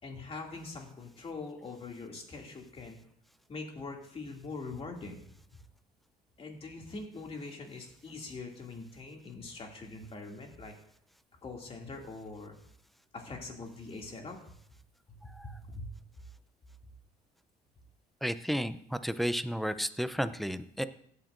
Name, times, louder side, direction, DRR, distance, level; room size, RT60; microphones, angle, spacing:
voice 1, 0.0-3.0 3.5-5.3 6.4-10.7 11.4-12.6 13.1-14.4 15.2-15.9, left 3 dB, 35° left, 1 dB, 2.4 m, -43 dB
voice 2, 18.2-18.8 19.0-20.8, equal, ahead, 11 dB, 0.5 m, -32 dB
16.0 x 8.9 x 2.6 m, 0.65 s
cardioid pair, 110°, 17 cm